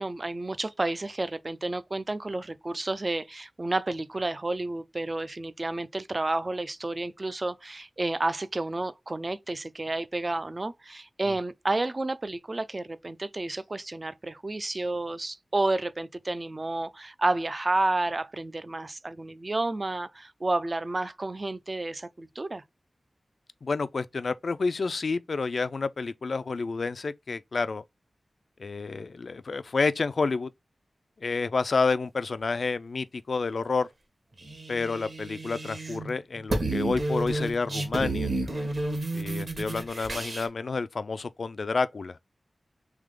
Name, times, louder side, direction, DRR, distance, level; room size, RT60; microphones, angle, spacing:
voice 1, 0.0-22.6, right 2 dB, 35° right, 0.4 m, -31 dB
voice 2, 23.6-27.8 28.6-30.5 31.2-33.9 34.7-38.3 39.1-42.2, left 4 dB, 65° left, 0.3 m, -29 dB
sound 1, 34.4-36.1 36.4-40.5, right 2 dB, 50° right, 1.3 m, -31 dB
3.5 x 3.2 x 3.6 m
wide cardioid pair, 95°, 0 cm